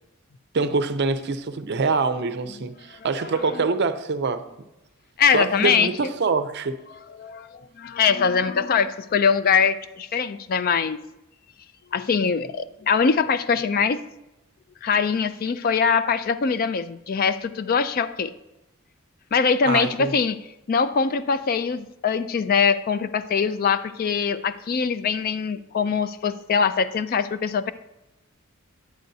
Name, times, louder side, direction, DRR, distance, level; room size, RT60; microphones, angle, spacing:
voice 1, 0.5-4.4 5.3-6.8 19.6-20.1, right 4 dB, 50° right, 11 dB, 0.5 m, -25 dB
voice 2, 3.2-3.6 5.2-5.9 7.2-11.0 11.9-14.0 14.8-18.3 19.3-20.4 20.7-27.7, left 6 dB, 45° left, 13 dB, 0.3 m, -22 dB
9.3 x 8.9 x 2.7 m, 0.97 s
head